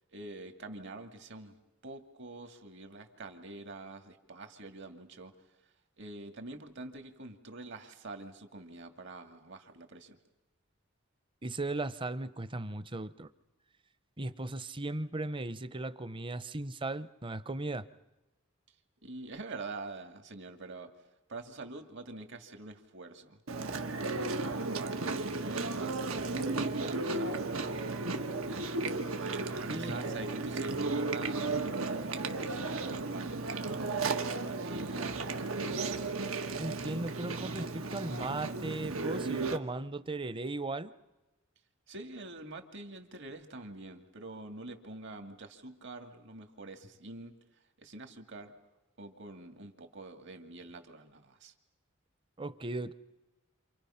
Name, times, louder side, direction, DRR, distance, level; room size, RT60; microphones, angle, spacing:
voice 1, 0.1-1.6 1.8-5.3 6.0-10.2 19.0-20.9 21.3-23.4 24.1-28.1 28.4-28.7 29.1-35.3 41.9-47.3 47.8-48.5 49.0-51.5, right 2 dB, 60° right, 6 dB, 2.4 m, -45 dB
voice 2, 11.4-13.3 14.2-17.9 29.7-30.0 36.6-40.9 52.4-52.9, right 2 dB, 25° right, 14 dB, 0.8 m, -37 dB
Chewing mastication, 23.5-39.6, right 3 dB, 90° right, 1.7 m, -34 dB
29.5 x 27.5 x 5.8 m, 1.0 s
head